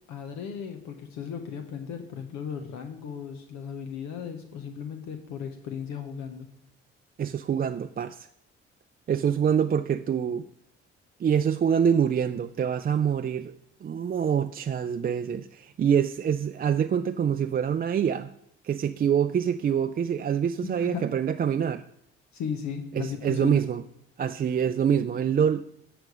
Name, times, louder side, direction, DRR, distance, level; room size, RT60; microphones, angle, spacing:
voice 1, 0.1-6.5 20.6-21.1 22.3-23.5, left 7 dB, 75° left, 0.9 m, -36 dB
voice 2, 7.2-8.3 9.1-10.5 11.2-13.5 13.8-18.3 18.6-21.8 22.9-23.8 24.2-25.6, right 8 dB, 30° right, 0.4 m, -25 dB
9.1 x 5.1 x 4.9 m
hypercardioid pair, 50°, 29 cm